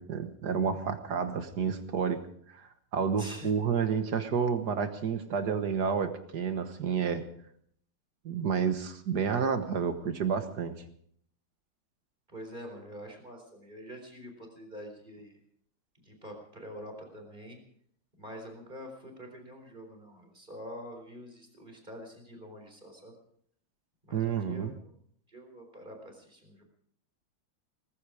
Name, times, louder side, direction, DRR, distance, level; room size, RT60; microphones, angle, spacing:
voice 1, 0.0-2.2 2.5-7.2 8.2-10.8 24.1-24.7, right 6 dB, 50° right, 9 dB, 1.7 m, -30 dB
voice 2, 3.2-3.5 12.3-15.4 16.0-17.6 18.2-23.1 24.0-24.7 25.3-26.6, equal, 20° right, 2 dB, 4.1 m, -46 dB
19.0 x 15.0 x 4.9 m, 0.65 s
omnidirectional pair, 2.4 m